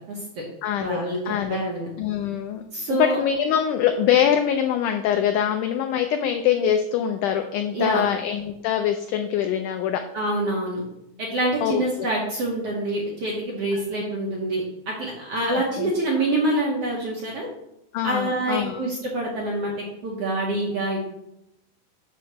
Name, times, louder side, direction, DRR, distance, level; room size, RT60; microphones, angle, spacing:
voice 1, 0.0-0.4 0.8-1.2 1.5-1.9 2.7-3.2 7.7-8.1 10.1-10.8 11.2-17.5 18.0-21.0, right 1 dB, 65° right, -3 dB, 1.5 m, -26 dB
voice 2, 0.6-1.6 2.0-2.6 2.9-10.0 11.6-12.1 13.7-13.8 15.5-15.9 17.9-18.9, left 9 dB, 90° left, 6 dB, 1.8 m, -24 dB
8.3 x 2.9 x 6.2 m, 0.84 s
omnidirectional pair, 4.1 m